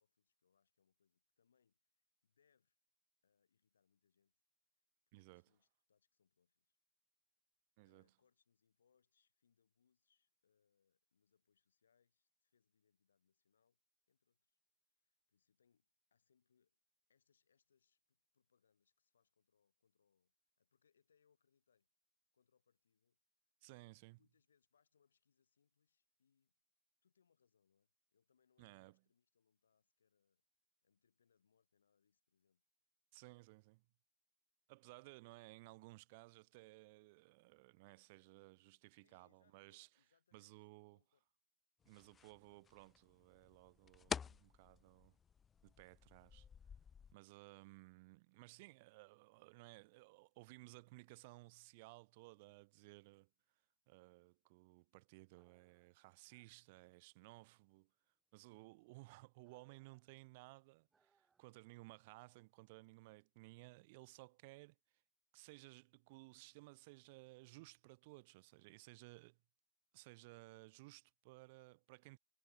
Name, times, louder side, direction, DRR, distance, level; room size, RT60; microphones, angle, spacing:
voice 1, 0.0-2.8 3.2-4.4 4.8-4.9 5.2-6.8 7.9-13.8 14.1-14.6 14.9-16.8 17.1-21.9 22.3-23.2 23.4-23.5 24.2-26.5 27.0-30.4 30.8-32.6 39.0-41.2, left 7 dB, 80° left, 6.6 m, -81 dB
voice 2, 5.1-5.5 7.8-8.1 23.6-24.2 28.6-29.0 33.1-33.8 34.7-39.9 40.3-41.0 41.8-45.2 45.6-46.5 47.1-53.3 53.9-57.9 58.3-65.0 65.3-69.4 69.9-72.2, right 24 dB, 55° right, 0.5 m, -59 dB
sound 1, 41.8-47.1, left 7 dB, 25° left, 0.3 m, -50 dB
sound 2, 55.3-61.8, right 5 dB, 15° right, 6.9 m, -83 dB
hypercardioid pair, 95°, 0 cm